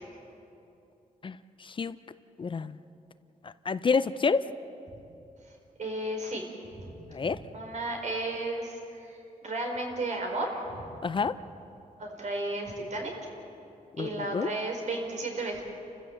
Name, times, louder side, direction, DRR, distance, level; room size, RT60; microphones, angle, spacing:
voice 1, 2.4-2.7 3.7-4.5 7.1-7.4 11.0-11.3 14.0-14.5, left 5 dB, 35° left, 13 dB, 0.5 m, -27 dB
voice 2, 5.8-6.4 6.7-6.9 7.2-10.8 12.0-13.1 14.0-15.6, right 2 dB, 60° right, 2 dB, 4.3 m, -34 dB
30.0 x 15.0 x 7.6 m, 2.8 s
wide cardioid pair, 145°, 14 cm